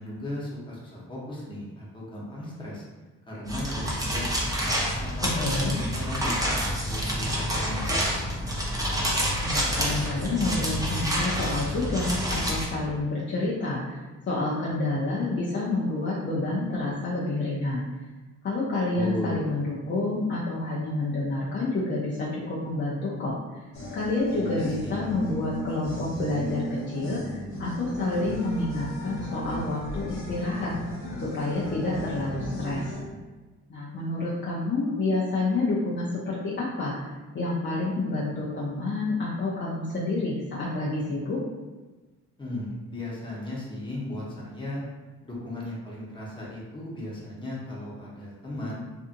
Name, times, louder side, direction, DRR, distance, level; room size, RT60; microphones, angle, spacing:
voice 1, 0.0-2.8 3.3-4.5 5.0-8.2 18.9-19.4 24.3-25.0 42.4-44.8 45.2-48.9, left 1 dB, 15° left, -6 dB, 1.0 m, -36 dB
sound 1, 3.4-12.6, equal, 10° right, 0.6 m, -28 dB
voice 2, 5.2-5.7 9.4-14.0 14.3-17.8 18.4-23.4 23.9-30.7 31.2-32.9 33.7-37.0 37.3-41.4, left 2 dB, 40° left, -7 dB, 0.6 m, -28 dB
sound 2, 23.7-33.0, equal, 60° left, 1.1 m, -35 dB
2.6 x 2.5 x 2.5 m, 1.2 s
cardioid pair, 90°, 30 cm